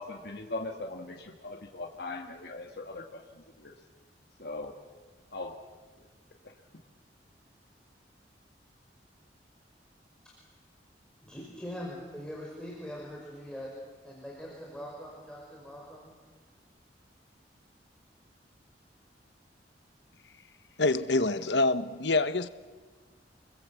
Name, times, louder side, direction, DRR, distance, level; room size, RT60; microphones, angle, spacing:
voice 1, 0.0-3.2 3.6-3.7 4.4-4.7 5.3-5.5, left 2 dB, 65° left, 1.9 m, -39 dB
voice 2, 11.2-13.7 14.0-16.1, equal, 5° left, 5.4 m, -42 dB
voice 3, 20.8-22.5, left 2 dB, 85° left, 1.2 m, -26 dB
28.5 x 21.5 x 8.5 m
head